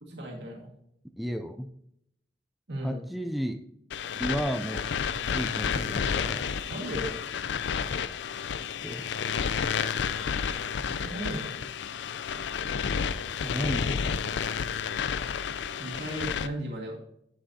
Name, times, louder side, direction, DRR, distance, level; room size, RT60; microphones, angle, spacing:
voice 1, 0.0-0.7 2.7-3.0 6.7-7.2 10.7-11.5 15.8-17.0, right 1 dB, 70° right, -2 dB, 1.7 m, -36 dB
voice 2, 1.2-1.7 2.8-3.6 4.2-4.9 5.3-6.5 8.7-9.1 13.4-14.4, equal, ahead, 6 dB, 0.3 m, -33 dB
sound 1, 3.9-16.5, left 7 dB, 75° left, 0.4 m, -31 dB
11.0 x 6.2 x 2.7 m, 0.75 s
head